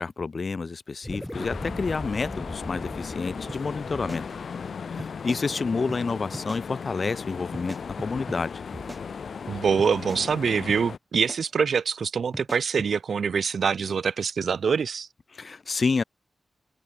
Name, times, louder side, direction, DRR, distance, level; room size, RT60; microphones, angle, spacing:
voice 1, 0.0-4.2 4.9-8.6 15.3-16.0, left 4 dB, 50° left, 1.2 m, -29 dB
sound 1, 1.0-5.7, equal, 5° left, 4.3 m, -39 dB
sound 2, 1.3-11.0, left 6 dB, 75° left, 5.9 m, -37 dB
sound 3, 3.5-3.6 3.9-4.7 5.0-5.4 5.9-6.0 6.3-6.6 7.5-8.4 8.7-9.5 9.8-10.2 10.7-10.8 11.1-11.4 12.3-12.9, right 1 dB, 15° right, 6.1 m, -40 dB
voice 2, 9.5-15.1, right 6 dB, 75° right, 1.0 m, -25 dB
open air
wide cardioid pair, 80°, 0 cm